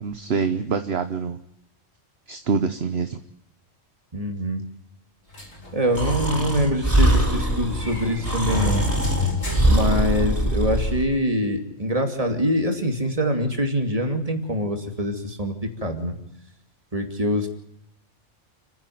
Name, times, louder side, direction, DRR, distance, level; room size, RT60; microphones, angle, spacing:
voice 1, 0.0-1.4 2.3-3.2, right 5 dB, 55° right, 8 dB, 1.3 m, -25 dB
voice 2, 4.1-4.6 5.7-8.9 9.6-15.5 15.8-16.2 16.9-17.5, equal, 30° right, 4 dB, 2.7 m, -24 dB
sound 1, 5.3-10.6, left 4 dB, 90° left, 5.1 m, -31 dB
Breathing, 5.9-11.1, right 1 dB, 10° right, 4.2 m, -22 dB
29.5 x 10.0 x 9.4 m, 0.77 s
omnidirectional pair, 1.3 m